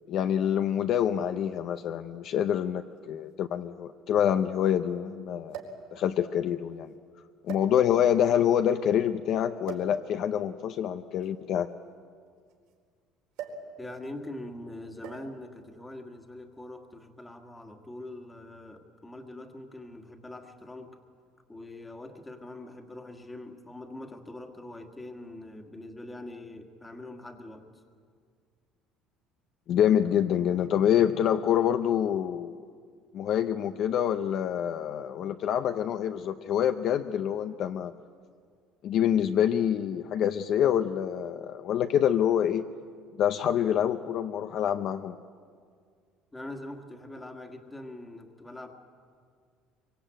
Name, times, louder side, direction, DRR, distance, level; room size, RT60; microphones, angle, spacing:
voice 1, 0.1-5.6 5.9-6.9 7.5-11.7 29.7-32.6 33.1-37.9 38.8-42.7 43.2-45.1, left 9 dB, 45° left, 8 dB, 0.6 m, -26 dB
sound 1, 1.8-1.9 3.0-3.1 3.3-3.4 5.5-5.9 6.7-6.9 7.4-8.1 9.6-10.0 11.1-12.7 13.3-13.7 14.0-14.3 15.0-15.4 16.4-16.6, right 6 dB, 75° right, 4.3 m, -42 dB
voice 2, 13.8-21.0 21.5-27.7 46.3-48.7, left 1 dB, 10° left, 5 dB, 1.7 m, -43 dB
25.0 x 24.0 x 9.0 m, 2.1 s
cardioid pair, 175°, 0 cm